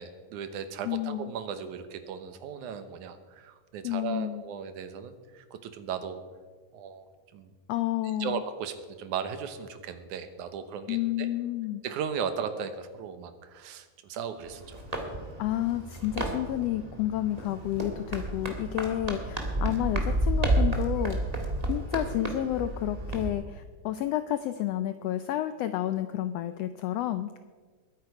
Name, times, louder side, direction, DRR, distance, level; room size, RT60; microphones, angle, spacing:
voice 1, 0.0-6.2 6.7-7.1 7.3-7.5 8.2-11.3 11.8-14.8, right 7 dB, 85° right, 9 dB, 2.5 m, -36 dB
voice 2, 0.8-1.3 3.8-4.4 7.7-8.4 10.9-11.8 15.4-21.2 21.7-27.4, left 13 dB, 85° left, 11 dB, 1.4 m, -30 dB
sound 1, 14.4-23.3, right 1 dB, 20° right, 1.2 m, -31 dB
21.5 x 9.4 x 4.8 m, 1.5 s
omnidirectional pair, 3.4 m